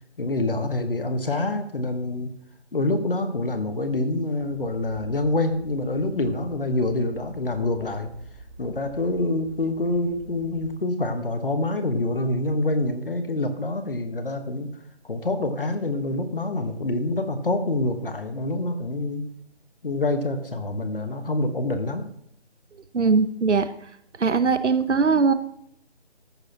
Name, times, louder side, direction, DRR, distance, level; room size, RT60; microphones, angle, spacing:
voice 1, 0.2-2.3 2.7-8.1 8.6-14.7 15.0-19.2 19.8-22.1, left 2 dB, 50° left, 8 dB, 1.2 m, -26 dB
sound 1, 4.4-10.7, right 2 dB, 20° right, 1.8 m, -45 dB
voice 2, 22.9-23.7 24.2-25.3, right 5 dB, 80° right, 12 dB, 1.0 m, -20 dB
13.5 x 6.4 x 2.9 m, 0.73 s
figure-of-eight pair, 170°, 35 cm